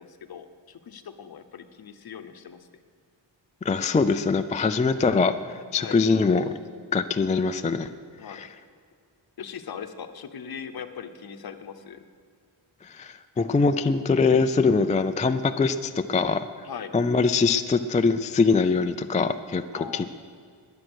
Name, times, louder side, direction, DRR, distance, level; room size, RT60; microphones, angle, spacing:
voice 1, 0.0-2.7 5.8-6.0 8.2-8.4 9.4-12.1 16.6-17.0 19.7-20.1, left 7 dB, 50° left, 9 dB, 0.9 m, -40 dB
voice 2, 3.6-6.5 6.9-7.9 8.3-8.5 12.8-16.5 16.9-19.6 19.9-20.1, left 4 dB, 20° left, 9 dB, 0.3 m, -23 dB
21.0 x 7.8 x 6.3 m, 2.2 s
wide cardioid pair, 165°, 46 cm